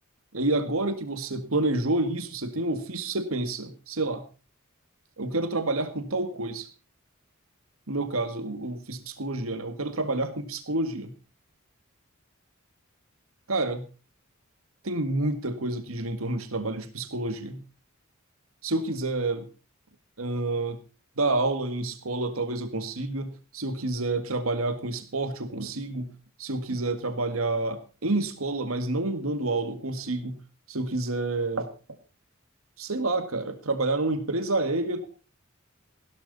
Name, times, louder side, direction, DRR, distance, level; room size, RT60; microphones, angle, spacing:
voice 1, 0.3-4.2 5.2-6.7 7.9-11.1 13.5-13.8 14.8-17.6 18.6-19.5 20.2-20.8 21.2-26.1 26.4-30.4 30.7-31.7 32.8-35.1, right 2 dB, 80° right, 9 dB, 1.9 m, -29 dB
16.0 x 12.5 x 4.1 m, 0.33 s
head